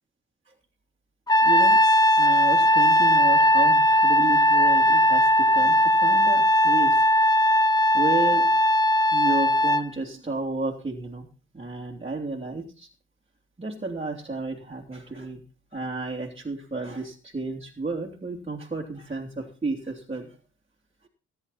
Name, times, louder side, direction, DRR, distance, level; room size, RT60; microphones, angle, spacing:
Trumpet, 1.3-9.9, equal, 15° left, 0.8 m, -19 dB
voice 1, 1.4-1.8 2.2-7.0 7.9-8.5 9.1-11.3 11.5-12.9 13.6-15.4 15.7-20.4, right 3 dB, 20° right, -3 dB, 3.1 m, -32 dB
18.5 x 10.5 x 4.3 m, 0.36 s
cardioid pair, 90°, 30 cm